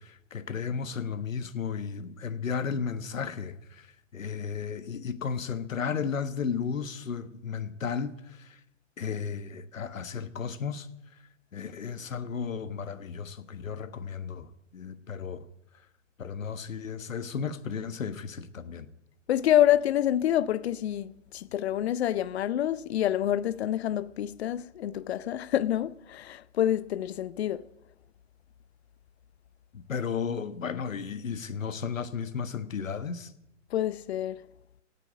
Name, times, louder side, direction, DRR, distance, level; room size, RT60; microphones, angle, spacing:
voice 1, 0.0-3.9 4.1-8.6 9.0-10.9 11.5-15.4 16.2-18.9 29.7-33.3, left 6 dB, 75° left, 1.4 m, -34 dB
voice 2, 19.3-27.6 33.7-34.4, left 12 dB, 55° left, 0.8 m, -27 dB
16.5 x 8.6 x 8.9 m
figure-of-eight pair, 120°, 39 cm